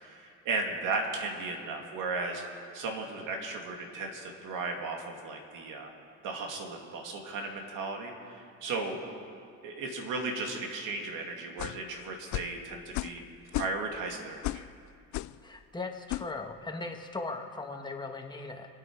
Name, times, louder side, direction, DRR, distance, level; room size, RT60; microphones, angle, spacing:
voice 1, 0.0-2.4 2.7-5.9 6.2-9.0 9.6-13.2 13.5-14.6, right 3 dB, 75° right, 2 dB, 2.5 m, -35 dB
sound 1, 11.6-11.8 12.3-12.6 12.9-13.2 13.5-14.0 14.4-14.7 15.1-15.4 16.1-16.3, left 17 dB, 65° left, 0.4 m, -34 dB
voice 2, 15.4-18.7, left 3 dB, 15° left, 3 dB, 1.5 m, -38 dB
27.0 x 9.3 x 4.7 m, 2.4 s
cardioid pair, 110°, 32 cm